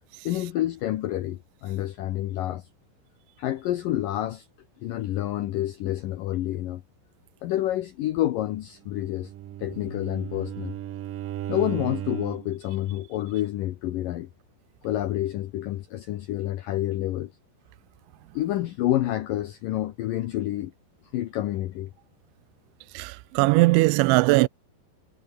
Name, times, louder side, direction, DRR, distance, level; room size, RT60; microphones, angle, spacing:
voice 1, 0.3-2.7 3.4-4.5 4.8-6.8 7.4-9.3 9.6-10.7 11.5-14.3 14.8-17.3 18.3-20.7 21.1-21.9, left 14 dB, 85° left, 1.9 m, -28 dB
Bowed string instrument, 8.9-12.6, right 12 dB, 65° right, 2.4 m, -35 dB
voice 2, 22.9-24.5, right 23 dB, 85° right, 2.9 m, -19 dB
omnidirectional pair, 5.3 m